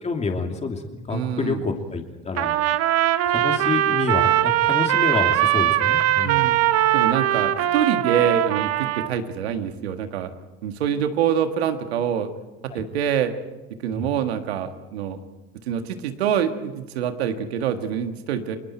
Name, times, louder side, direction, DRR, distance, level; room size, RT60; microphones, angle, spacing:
voice 1, 0.0-2.6 3.3-6.5 12.7-12.8 13.9-14.1, left 4 dB, 20° left, 3 dB, 2.9 m, -28 dB
voice 2, 1.1-1.6 6.2-6.6 6.9-10.3 10.6-12.3 12.6-13.3 13.8-15.2 15.7-18.6, right 8 dB, 90° right, 7 dB, 1.8 m, -25 dB
Trumpet, 2.4-9.1, right 13 dB, 50° right, 1.2 m, -21 dB
30.0 x 21.0 x 4.5 m, 1.1 s
supercardioid pair, 90°, 31 cm